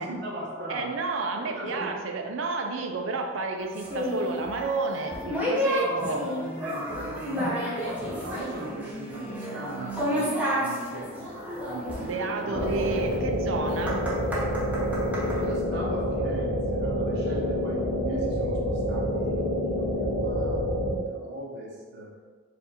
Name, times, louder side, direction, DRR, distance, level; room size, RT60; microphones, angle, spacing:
voice 1, 0.0-1.0 1.3-2.0 5.7-12.7 15.4-22.1, right 1 dB, 55° right, -5 dB, 1.1 m, -38 dB
voice 2, 0.7-6.2 12.0-14.1, right 3 dB, 75° right, 4 dB, 0.5 m, -31 dB
sound 1, 3.7-15.4, equal, 5° right, 0.9 m, -31 dB
sound 2, 12.5-21.0, equal, 35° left, 0.6 m, -27 dB
4.8 x 2.5 x 4.3 m, 1.5 s
head